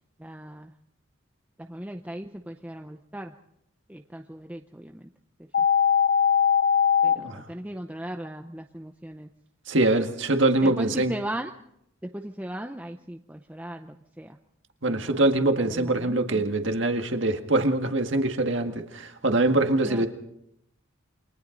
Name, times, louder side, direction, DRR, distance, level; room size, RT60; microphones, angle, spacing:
voice 1, 0.2-0.7 1.6-3.3 3.9-5.1 5.6-5.7 7.0-9.3 10.6-11.5 12.0-14.4 14.8-15.1 15.6-16.4 19.8-20.1, right 1 dB, 10° right, 4 dB, 0.7 m, -37 dB
sound 1, 5.5-7.1, left 7 dB, 55° left, 1.1 m, -20 dB
voice 2, 9.7-11.1 14.8-20.1, right 2 dB, 65° right, 5 dB, 1.9 m, -24 dB
29.0 x 23.5 x 3.9 m, 0.77 s
head